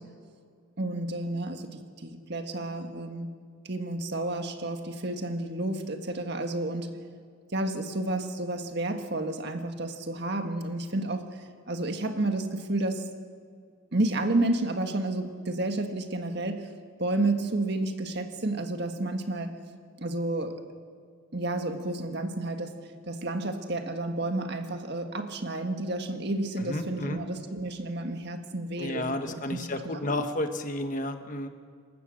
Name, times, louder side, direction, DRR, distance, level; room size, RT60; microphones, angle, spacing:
voice 1, 0.8-3.3 3.6-6.9 7.5-11.3 11.7-13.1 13.9-16.7 17.0-19.6 20.0-20.6 21.3-22.7 23.1-29.7, right 2 dB, 55° right, 6 dB, 1.7 m, -31 dB
voice 2, 26.6-27.2 28.8-31.5, left 1 dB, 40° left, 7 dB, 1.3 m, -32 dB
27.5 x 15.0 x 6.5 m, 2.2 s
head